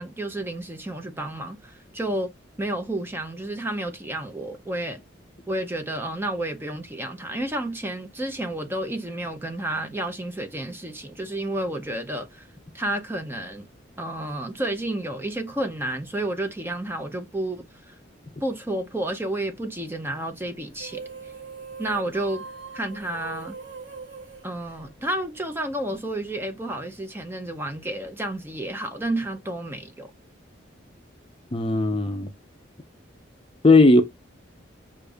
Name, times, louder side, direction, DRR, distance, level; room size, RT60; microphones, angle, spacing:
voice 1, 0.0-2.3 2.6-5.0 5.5-12.5 12.7-13.6 14.0-18.0 18.4-21.1 21.8-22.5 22.7-23.6 24.4-30.1, right 1 dB, 10° right, 0.6 m, -31 dB
sound 1, 20.7-25.4, right 5 dB, 75° right, 1.3 m, -41 dB
voice 2, 31.5-32.3 33.6-34.0, left 2 dB, 30° left, 0.6 m, -17 dB
6.4 x 2.6 x 2.3 m
head